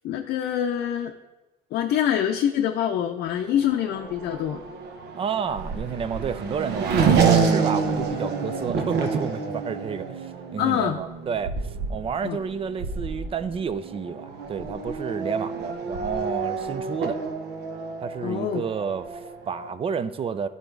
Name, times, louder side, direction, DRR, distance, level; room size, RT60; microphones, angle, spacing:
voice 1, 0.0-1.1 1.7-4.6 10.6-11.0 12.2-12.4 18.2-18.7, left 10 dB, 75° left, 3 dB, 0.6 m, -25 dB
Race car auto racing / Accelerating revving vroom, 3.5-19.7, right 5 dB, 75° right, 0.9 m, -28 dB
voice 2, 5.1-17.2 18.0-20.5, right 6 dB, 35° right, 13 dB, 0.5 m, -30 dB
11.0 x 4.1 x 4.6 m, 1.1 s
cardioid pair, 110°, 17 cm